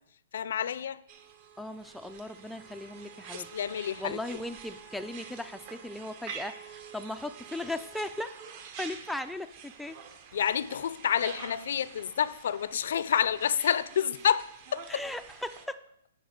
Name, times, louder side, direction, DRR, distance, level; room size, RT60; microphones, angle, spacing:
voice 1, 0.3-1.0 3.3-4.2 10.3-15.0, left 9 dB, 65° left, 17 dB, 0.4 m, -29 dB
sound 1, 1.1-15.7, right 7 dB, 40° right, 0.9 m, -47 dB
voice 2, 1.6-3.5 4.0-8.4 8.8-10.0 14.9-15.8, left 1 dB, ahead, 7 dB, 0.3 m, -37 dB
10.0 x 4.1 x 6.4 m, 0.76 s
hypercardioid pair, 150°, 0 cm